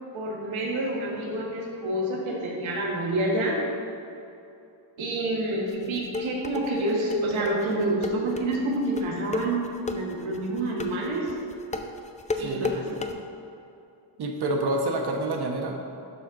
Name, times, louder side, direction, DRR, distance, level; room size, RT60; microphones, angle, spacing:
voice 1, 0.1-3.6 5.0-11.3 12.4-12.8, right 1 dB, 80° right, -2 dB, 1.7 m, -28 dB
sound 1, 5.7-13.1, left 3 dB, 15° left, 0.4 m, -32 dB
voice 2, 12.4-12.7 14.2-15.7, right 2 dB, 55° right, 2 dB, 1.1 m, -28 dB
12.0 x 4.3 x 3.7 m, 2.7 s
cardioid pair, 115°, 47 cm